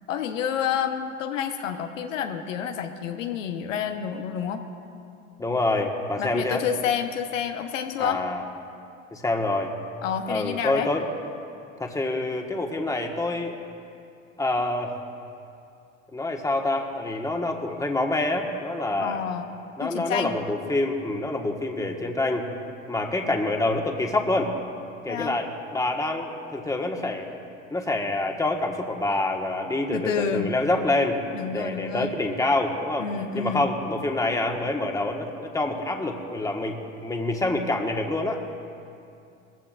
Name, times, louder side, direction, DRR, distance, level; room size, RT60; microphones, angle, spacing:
voice 1, 0.1-4.6 6.2-8.2 10.0-10.9 19.0-19.5 19.8-20.3 25.1-25.4 29.9-30.5 31.3-32.1 33.0-33.7, left 8 dB, 75° left, 5 dB, 1.2 m, -29 dB
voice 2, 5.4-6.6 8.0-8.4 9.1-9.7 10.3-11.0 11.8-13.6 14.4-15.0 16.1-19.2 19.8-22.5 22.9-24.5 25.0-27.3 27.7-31.2 31.5-33.1 33.3-38.4, left 2 dB, 10° left, 2 dB, 1.5 m, -26 dB
21.0 x 15.0 x 2.6 m, 2.6 s
hypercardioid pair, 80°, 39 cm